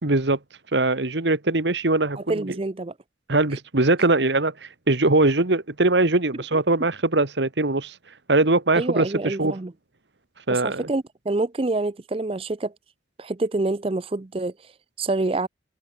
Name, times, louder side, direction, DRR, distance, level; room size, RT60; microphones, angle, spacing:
voice 1, 0.0-0.4 0.7-2.6 3.3-7.9 8.3-9.5 10.5-10.9, right 2 dB, 80° right, 1.8 m, -21 dB
voice 2, 2.2-2.9 3.5-3.6 8.8-9.7 10.5-12.7 13.2-14.7 15.0-15.5, right 2 dB, 30° right, 0.5 m, -27 dB
head